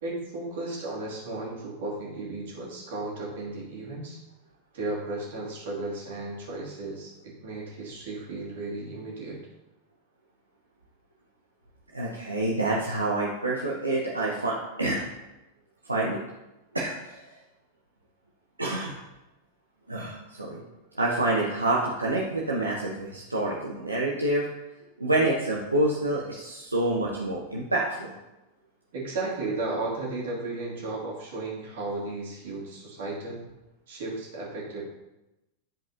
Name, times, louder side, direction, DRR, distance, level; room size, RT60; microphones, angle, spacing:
voice 1, 0.0-4.2 4.7-9.4 28.9-33.5 33.9-34.8, right 2 dB, 55° right, -4 dB, 2.3 m, -34 dB
voice 2, 11.9-15.0 15.9-16.2 16.7-17.2 18.6-18.9 19.9-20.6 21.0-24.5 25.0-28.1, right 2 dB, 80° right, -3 dB, 0.8 m, -27 dB
10.5 x 4.8 x 2.7 m, 0.99 s
figure-of-eight pair, 90°, 0 cm